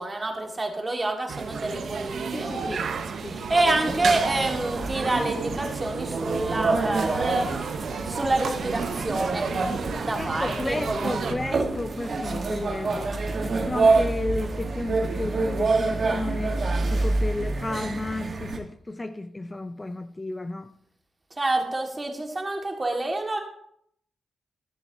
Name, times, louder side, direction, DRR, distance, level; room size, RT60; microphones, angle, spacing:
voice 1, 0.0-2.8 3.2-7.4 8.0-9.5 10.0-11.4 21.4-23.4, right 2 dB, 25° right, 3 dB, 1.6 m, -28 dB
sound 1, 1.3-11.3, right 5 dB, 70° right, 0.7 m, -32 dB
voice 2, 2.3-2.8 3.2-3.5 10.1-20.7, left 2 dB, 25° left, 9 dB, 0.4 m, -33 dB
sound 2, 3.6-18.6, right 3 dB, 55° right, 1.2 m, -27 dB
12.5 x 7.0 x 2.7 m, 0.70 s
cardioid pair, 80°, 0 cm